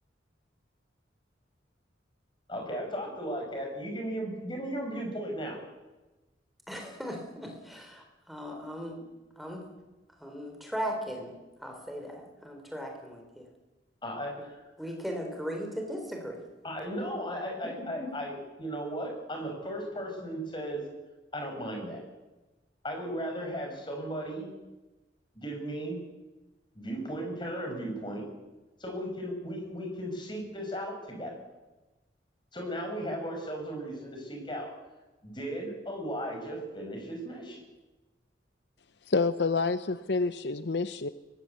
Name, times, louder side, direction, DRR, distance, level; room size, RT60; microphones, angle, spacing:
voice 1, 2.5-5.6 14.0-14.6 16.6-20.8 21.3-22.0 22.8-24.5 25.4-26.0 26.7-28.2 28.8-31.3 32.5-34.7 35.2-37.6, equal, 25° left, 6.2 m, -36 dB
voice 2, 6.7-9.1 9.4-9.6 10.2-11.4 11.6-13.4 14.8-16.4 17.5-18.1, equal, ahead, 4.1 m, -38 dB
voice 3, 39.1-41.1, left 4 dB, 65° left, 0.7 m, -28 dB
23.5 x 19.5 x 8.5 m
head